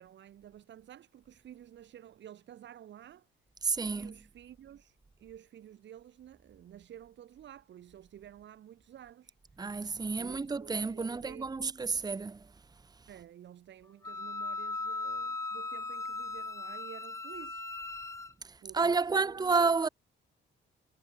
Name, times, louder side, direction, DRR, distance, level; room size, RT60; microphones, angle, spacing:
voice 1, 0.0-3.3 3.9-9.3 10.2-11.5 13.1-17.6 18.6-19.5, right 11 dB, 65° right, 1.7 m, -51 dB
voice 2, 3.6-4.1 9.6-12.4 18.7-19.9, right 4 dB, 20° right, 0.9 m, -30 dB
Wind instrument woodwind instrument, 14.0-18.3, left 3 dB, 15° left, 0.6 m, -38 dB
cardioid pair, 90°, 20 cm